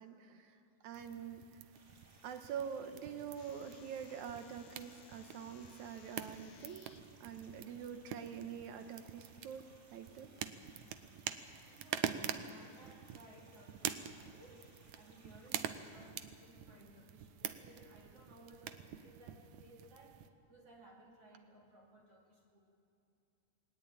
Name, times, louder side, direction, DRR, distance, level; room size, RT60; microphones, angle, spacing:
voice 1, 0.0-1.6 2.2-6.9 7.2-9.6 9.9-10.3, right 7 dB, 70° right, 7 dB, 2.0 m, -45 dB
sound 1, 0.9-20.3, right 10 dB, 90° right, 1.6 m, -46 dB
sound 2, 1.7-16.1, right 1 dB, 25° right, 5.0 m, -66 dB
sound 3, 3.4-7.0, left 9 dB, 65° left, 2.5 m, -63 dB
voice 2, 11.7-22.6, right 2 dB, 40° right, -2 dB, 3.2 m, -60 dB
20.5 x 19.0 x 8.8 m, 2.7 s
omnidirectional pair, 4.4 m